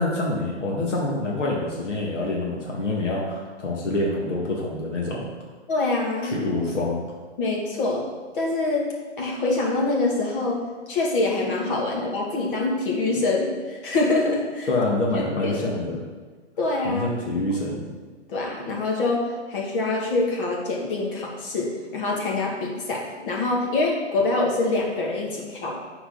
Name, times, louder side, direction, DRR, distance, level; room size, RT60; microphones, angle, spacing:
voice 1, 0.0-5.3 6.2-7.0 14.7-16.0 16.8-17.9, left 2 dB, 85° left, -3 dB, 2.2 m, -26 dB
voice 2, 5.7-6.3 7.4-8.1 8.3-14.7 15.1-15.6 16.6-17.1 18.3-25.7, left 2 dB, 45° left, -2 dB, 2.2 m, -25 dB
12.0 x 4.6 x 4.0 m, 1.4 s
hypercardioid pair, 145°, 36 cm